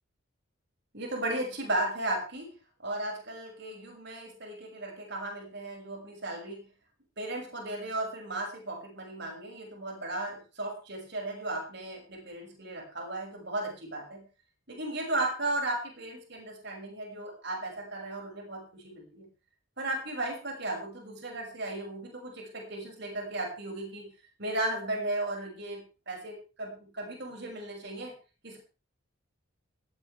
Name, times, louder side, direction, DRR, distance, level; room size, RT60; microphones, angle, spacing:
voice 1, 0.9-2.5 2.8-6.6 7.2-14.2 14.7-19.2 19.8-24.1 24.4-28.1 28.4-28.6, right 2 dB, 55° right, 2 dB, 6.1 m, -35 dB
17.0 x 16.0 x 3.4 m, 0.33 s
head